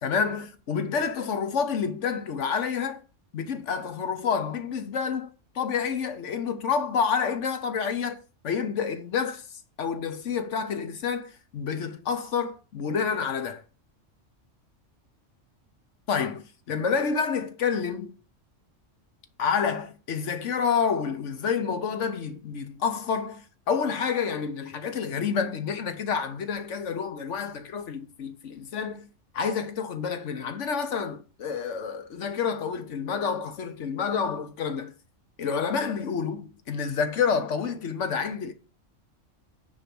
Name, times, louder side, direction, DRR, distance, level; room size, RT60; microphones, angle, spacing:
voice 1, 0.0-3.0 3.3-5.3 5.5-9.5 9.8-13.6 16.1-18.1 19.4-29.1 29.3-34.9 35.4-38.5, left 6 dB, 70° left, 1.3 m, -28 dB
6.4 x 4.7 x 6.1 m
omnidirectional pair, 1.3 m